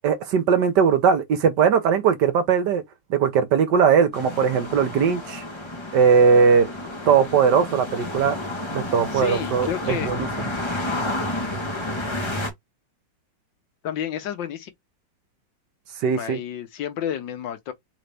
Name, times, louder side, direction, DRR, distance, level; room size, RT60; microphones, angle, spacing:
voice 1, 0.0-2.8 3.1-5.4 5.9-6.7 7.1-8.4 8.7-10.3 16.0-16.4, right 6 dB, 65° right, 1.4 m, -19 dB
sound 1, 4.1-12.5, left 1 dB, 15° left, 1.4 m, -31 dB
voice 2, 9.1-10.1 13.8-14.7 16.1-17.7, left 9 dB, 75° left, 1.6 m, -30 dB
4.0 x 3.9 x 3.4 m
omnidirectional pair, 2.0 m